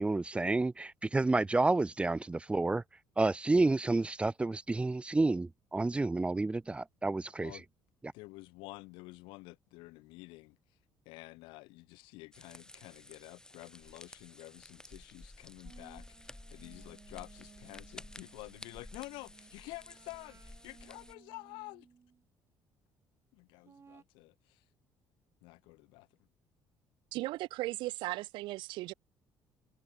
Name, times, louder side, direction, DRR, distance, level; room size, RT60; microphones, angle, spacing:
voice 1, 0.0-2.8 3.2-7.5, right 2 dB, 15° right, 0.5 m, -30 dB
voice 2, 8.1-10.6 11.1-21.9 23.3-24.6 25.4-26.1, left 23 dB, 90° left, 3.9 m, -50 dB
sound 1, 12.3-21.1, left 1 dB, 10° left, 6.7 m, -53 dB
sound 2, 15.6-22.2 23.6-24.0, right 5 dB, 35° right, 5.1 m, -60 dB
voice 3, 27.1-28.9, right 19 dB, 80° right, 1.0 m, -37 dB
cardioid pair, 95°, 8 cm